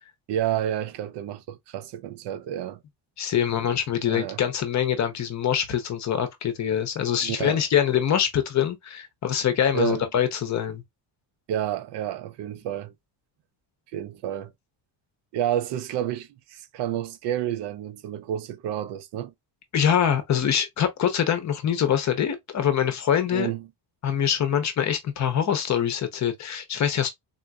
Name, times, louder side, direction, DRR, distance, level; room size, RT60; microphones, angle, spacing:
voice 1, 0.3-2.8 4.1-4.4 7.2-7.6 9.7-10.0 11.5-12.9 13.9-14.5 15.3-19.3 23.3-23.6, right 11 dB, 65° right, 0.6 m, -30 dB
voice 2, 3.2-10.8 19.7-23.5 24.0-27.1, left 9 dB, 40° left, 0.7 m, -24 dB
3.8 x 2.6 x 2.2 m
cardioid pair, 150°, 44 cm